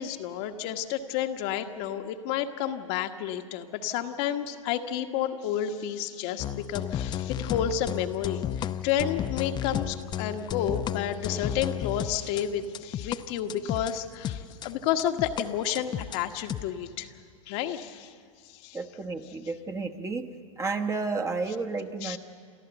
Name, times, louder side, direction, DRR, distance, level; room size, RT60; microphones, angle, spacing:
voice 1, 0.0-17.1 17.5-18.1 18.5-18.8 22.0-22.2, left 10 dB, 50° left, 5 dB, 1.3 m, -31 dB
sound 1, 6.4-13.2 13.5-15.4 15.7-16.6, left 10 dB, 25° left, 0.6 m, -33 dB
voice 2, 18.7-20.3 20.6-22.2, right 4 dB, 15° right, 6 dB, 1.2 m, -31 dB
29.0 x 13.5 x 8.0 m, 2.1 s
hypercardioid pair, 110°, 18 cm